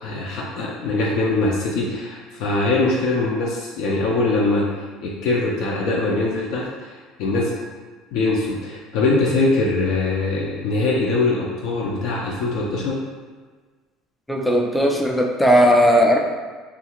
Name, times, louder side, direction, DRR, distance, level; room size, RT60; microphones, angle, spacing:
voice 1, 0.0-4.7 5.0-7.5 8.1-13.0, left 2 dB, 65° left, -4 dB, 0.5 m, -22 dB
voice 2, 14.3-16.2, equal, 5° left, 0 dB, 0.3 m, -16 dB
2.7 x 2.4 x 2.9 m, 1.4 s
cardioid pair, 150°, 0 cm